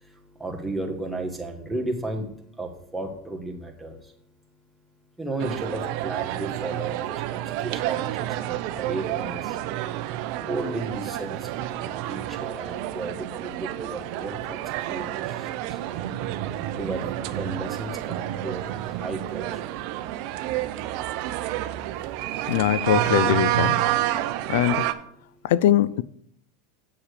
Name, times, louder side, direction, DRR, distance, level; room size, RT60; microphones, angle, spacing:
voice 1, 0.4-2.3 2.6-3.9 5.2-7.0 7.3-9.4 10.4-11.4 11.8-14.6 14.9-15.1 16.8-18.6 19.0-19.5, right 2 dB, 5° right, 1.5 m, -33 dB
sound 1, 5.4-24.9, right 14 dB, 55° right, 0.6 m, -29 dB
voice 2, 22.5-23.8 24.5-24.9 25.4-26.0, left 12 dB, 75° left, 0.3 m, -21 dB
7.2 x 6.5 x 5.0 m
supercardioid pair, 120°, 0 cm